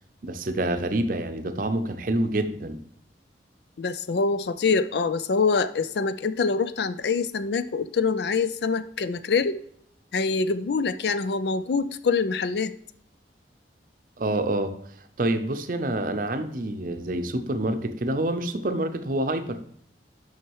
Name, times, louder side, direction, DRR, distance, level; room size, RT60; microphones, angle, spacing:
voice 1, 0.2-2.8 14.2-14.7 15.2-19.6, right 1 dB, 50° right, 8 dB, 0.6 m, -27 dB
voice 2, 3.8-9.6 10.1-12.7, left 4 dB, 65° left, 12 dB, 0.4 m, -25 dB
6.1 x 5.8 x 4.6 m, 0.65 s
head